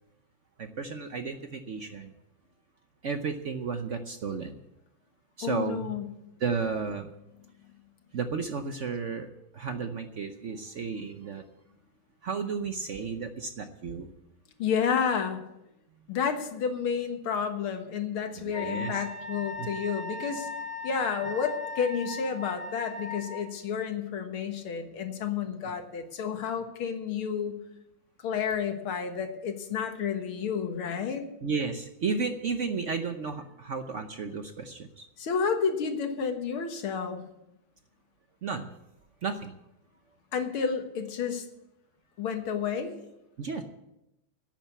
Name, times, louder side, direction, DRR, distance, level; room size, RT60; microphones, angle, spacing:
voice 1, 0.6-2.1 3.0-4.6 5.4-6.0 6.4-7.1 8.1-11.4 12.2-14.1 18.4-19.0 19.6-19.7 31.4-35.1 38.4-38.7 39.2-39.5 43.4-43.6, right 5 dB, 65° right, 7 dB, 0.7 m, -33 dB
voice 2, 5.4-6.1 14.6-15.4 16.1-20.5 20.8-27.6 28.2-31.2 35.2-37.2 40.3-41.4 42.2-42.9, left 6 dB, 85° left, 6 dB, 2.3 m, -30 dB
Wind instrument woodwind instrument, 18.5-23.4, left 3 dB, 10° left, 1.9 m, -38 dB
11.5 x 9.1 x 8.2 m, 0.88 s
omnidirectional pair, 2.3 m